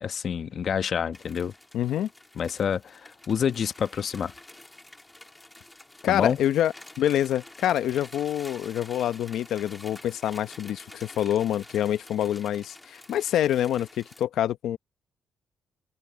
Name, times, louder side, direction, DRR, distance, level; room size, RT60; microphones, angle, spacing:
voice 1, 0.0-1.5 2.4-3.0 3.3-4.3 6.0-6.4, left 7 dB, 55° left, 1.0 m, -27 dB
sound 1, 1.1-14.2, left 2 dB, 15° left, 2.7 m, -49 dB
voice 2, 1.7-2.1 6.0-14.8, left 11 dB, 80° left, 0.9 m, -26 dB
open air
cardioid pair, 90°, 0 cm